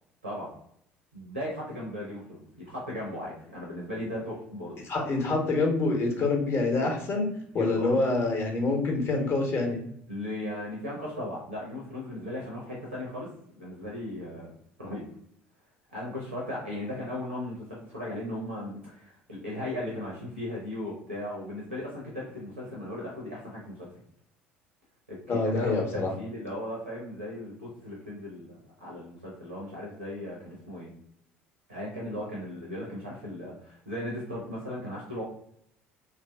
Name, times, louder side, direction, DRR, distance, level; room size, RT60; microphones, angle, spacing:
voice 1, 1.1-4.8 7.6-7.9 10.1-13.3 13.6-14.5 14.8-15.0 15.9-23.8 25.1-30.9 31.7-35.2, left 1 dB, 85° right, -4 dB, 0.6 m, -37 dB
voice 2, 4.9-7.3 7.5-9.8 25.3-26.1, left 3 dB, 40° left, 1 dB, 0.8 m, -26 dB
2.6 x 2.4 x 2.3 m, 0.68 s
figure-of-eight pair, 60°, 6 cm